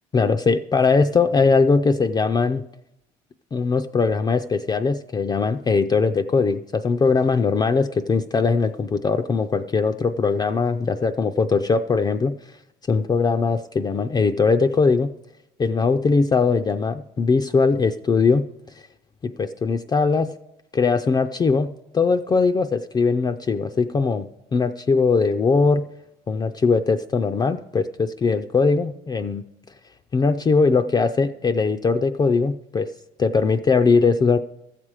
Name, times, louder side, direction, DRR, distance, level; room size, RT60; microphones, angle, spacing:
voice 1, 0.1-2.6 3.5-12.3 12.9-15.1 15.6-18.4 18.8-18.9 19.2-20.3 20.7-21.7 21.9-25.8 26.3-29.4 30.1-32.9 33.2-34.4, left 4 dB, 25° left, 7 dB, 0.4 m, -20 dB
13.5 x 7.4 x 4.8 m, 0.88 s
cardioid pair, 110°, 17 cm